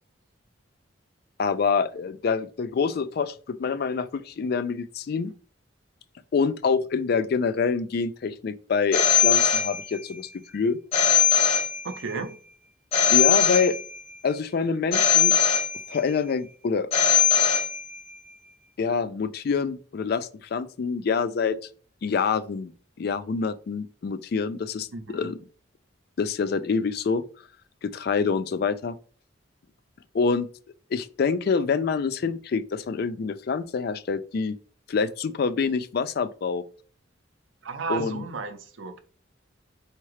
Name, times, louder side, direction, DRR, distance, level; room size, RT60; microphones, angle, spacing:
voice 1, 1.4-5.3 6.3-10.8 13.1-13.8 14.2-15.3 15.9-16.9 18.8-21.6 22.0-22.7 23.0-25.4 26.2-27.2 27.8-28.9 30.1-30.5 30.9-34.6 34.9-36.6 37.9-38.2, left 5 dB, 50° left, 0.3 m, -26 dB
Telephone, 8.9-10.2 10.9-12.2 12.9-14.2 14.9-16.2 16.9-18.2, left 8 dB, 30° left, 1.1 m, -21 dB
voice 2, 11.8-12.3 24.9-25.3 37.6-39.0, right 4 dB, 75° right, 0.6 m, -33 dB
4.6 x 2.9 x 3.1 m
head